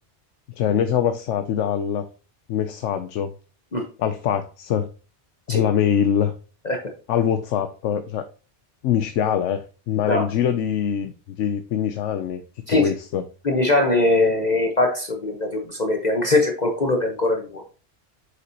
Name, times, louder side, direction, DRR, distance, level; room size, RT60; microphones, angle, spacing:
voice 1, 0.6-2.1 2.5-3.3 4.0-4.9 5.5-6.3 7.1-8.3 8.8-11.1 11.4-12.4 12.7-13.2, left 9 dB, 90° left, 10 dB, 1.0 m, -23 dB
voice 2, 13.4-17.6, left 2 dB, 40° left, 2 dB, 1.2 m, -21 dB
7.7 x 6.4 x 2.9 m, 0.35 s
omnidirectional pair, 1.2 m